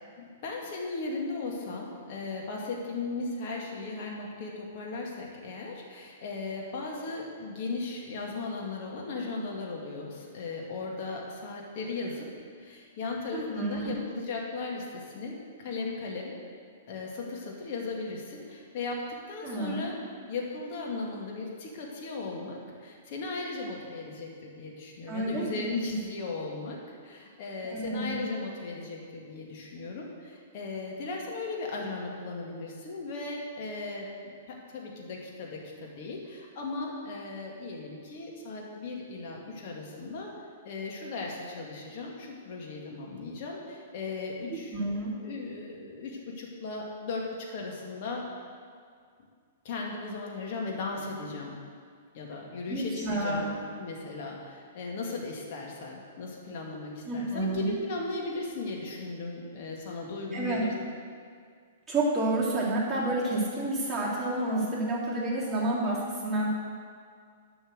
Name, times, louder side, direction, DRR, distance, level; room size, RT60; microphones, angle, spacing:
voice 1, 0.2-12.3 12.6-16.3 16.9-19.0 19.3-20.0 20.3-40.3 40.6-44.7 45.2-47.2 47.5-48.2 49.6-51.5 52.1-60.7, left 3 dB, 45° left, -2 dB, 2.4 m, -37 dB
voice 2, 13.3-14.0 19.4-19.9 25.1-25.9 27.6-28.2 44.5-45.1 52.7-53.5 57.0-57.7 60.3-60.6 61.9-66.5, right 2 dB, 10° right, -8 dB, 3.3 m, -30 dB
11.5 x 6.3 x 6.7 m, 2.1 s
figure-of-eight pair, 110°, 0 cm